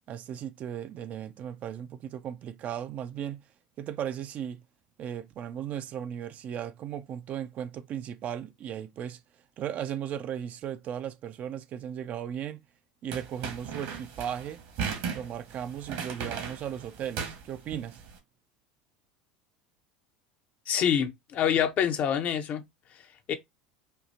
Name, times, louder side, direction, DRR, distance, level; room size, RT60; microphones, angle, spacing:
voice 1, 0.1-3.4 3.8-4.6 5.0-9.2 9.6-12.6 13.0-14.6 15.1-18.0, right 9 dB, 45° right, 0.4 m, -36 dB
sound 1, 13.1-18.1, right 6 dB, 65° right, 1.4 m, -37 dB
voice 2, 20.7-22.6 23.3-23.4, left 9 dB, 45° left, 0.7 m, -26 dB
4.4 x 2.4 x 2.7 m
hypercardioid pair, 75°, 4 cm